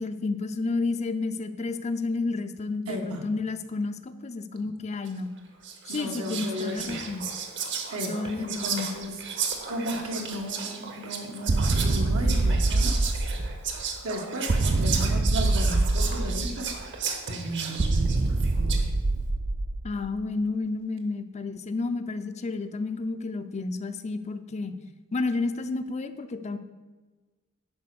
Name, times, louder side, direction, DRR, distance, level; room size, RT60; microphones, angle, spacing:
voice 1, 0.0-5.3 5.9-7.3 8.1-8.9 19.8-24.8 25.1-26.6, left 3 dB, 30° left, 9 dB, 0.5 m, -31 dB
voice 2, 2.9-3.3 5.9-7.0 7.9-13.2 14.0-17.0 17.3-18.9, equal, 80° right, 3 dB, 1.4 m, -35 dB
Whispering, 5.1-5.3 5.6-18.9, right 6 dB, 60° right, 1.2 m, -34 dB
sound 1, 11.5-13.8 14.5-16.8 17.8-20.1, right 2 dB, 35° right, 0.4 m, -24 dB
10.5 x 4.4 x 6.7 m, 1.3 s
head